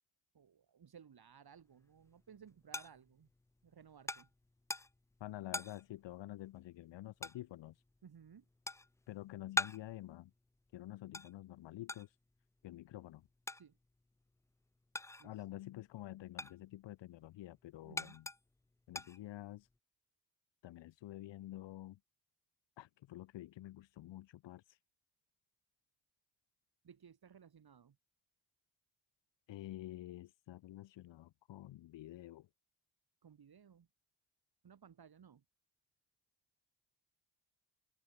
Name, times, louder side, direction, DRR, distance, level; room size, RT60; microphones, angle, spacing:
voice 1, 0.3-3.3 3.6-4.3 8.0-8.5 13.6-13.8 15.2-15.4 17.8-18.2 26.8-28.0 33.2-33.9 34.6-35.4, right 7 dB, 60° right, 6.4 m, -59 dB
sound 1, 1.7-15.5 15.8-19.8, left 2 dB, 5° left, 0.4 m, -45 dB
voice 2, 5.2-7.8 9.1-10.3 10.7-12.2 12.6-13.3 15.2-18.3 18.9-19.7 20.6-22.0 22.8-24.8 29.5-32.5, left 15 dB, 85° left, 2.2 m, -49 dB
open air
supercardioid pair, 55°, 43 cm